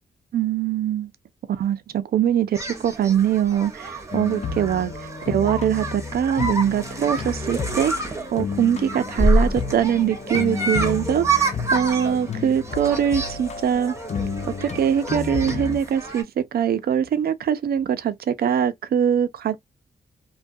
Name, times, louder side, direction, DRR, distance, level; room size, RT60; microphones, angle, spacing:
voice 1, 0.3-1.1 1.6-4.9 5.3-7.9 8.3-13.9 14.6-16.3 16.5-19.6, right 9 dB, 65° right, 0.4 m, -22 dB
sound 1, 2.5-16.2, right 3 dB, 15° right, 0.8 m, -31 dB
sound 2, 2.9-12.2, equal, 10° left, 0.9 m, -30 dB
sound 3, 4.1-15.8, left 5 dB, 40° left, 0.4 m, -32 dB
2.3 x 2.2 x 2.5 m
cardioid pair, 90°, 17 cm